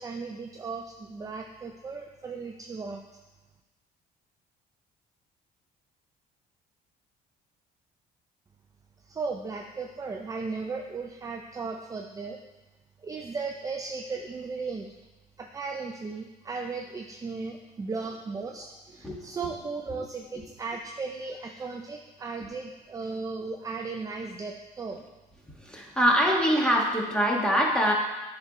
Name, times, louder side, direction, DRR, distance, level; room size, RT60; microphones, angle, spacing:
voice 1, 0.0-3.0 9.1-12.4 13.0-14.9 15.4-25.0, right 4 dB, 20° right, 3 dB, 0.4 m, -36 dB
voice 2, 25.6-27.9, equal, 5° left, -2 dB, 1.4 m, -23 dB
9.1 x 3.9 x 4.1 m, 1.1 s
cardioid pair, 110°, 17 cm